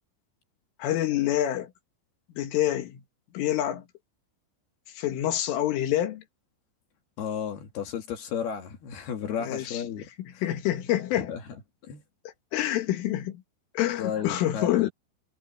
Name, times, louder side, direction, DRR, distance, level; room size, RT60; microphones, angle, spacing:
voice 1, 0.8-1.7 2.4-3.0 3.3-3.8 5.0-6.2 9.4-9.8 10.4-11.3 12.5-13.4 13.8-14.9, left 13 dB, 85° left, 4.5 m, -27 dB
voice 2, 7.2-10.1 11.2-11.4 11.9-12.0 14.0-14.9, left 8 dB, 60° left, 3.7 m, -33 dB
omnidirectional pair, 5.6 m